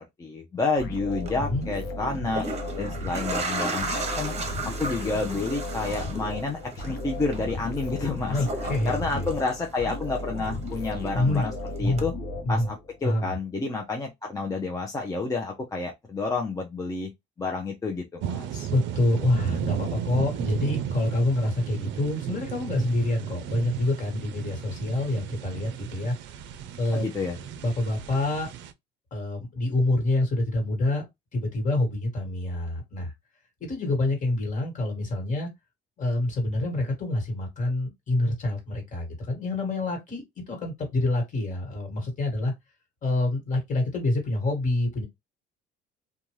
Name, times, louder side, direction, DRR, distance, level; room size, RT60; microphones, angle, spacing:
voice 1, 0.2-2.5 2.8-4.3 4.8-8.4 8.8-11.5 11.8-12.1 12.5-17.1 17.4-18.7 26.9-27.4, left 3 dB, 15° left, 0.5 m, -30 dB
sound 1, 0.8-13.0, left 2 dB, 55° left, 0.8 m, -35 dB
sound 2, 1.1-1.3 2.1-10.2 10.5-11.5 12.0-12.1, right 3 dB, 35° right, 0.8 m, -35 dB
voice 2, 8.3-9.2 11.1-11.4 11.8-12.0 12.4-12.7 13.0-13.3 18.7-26.1 26.8-27.1 27.6-28.5 29.1-31.0 31.3-33.1 33.6-35.5 36.0-42.5 43.0-45.0, left 2 dB, 40° left, 1.5 m, -27 dB
sound 3, 18.2-28.7, right 10 dB, 65° right, 0.5 m, -34 dB
2.5 x 2.3 x 3.1 m
cardioid pair, 110°, 20 cm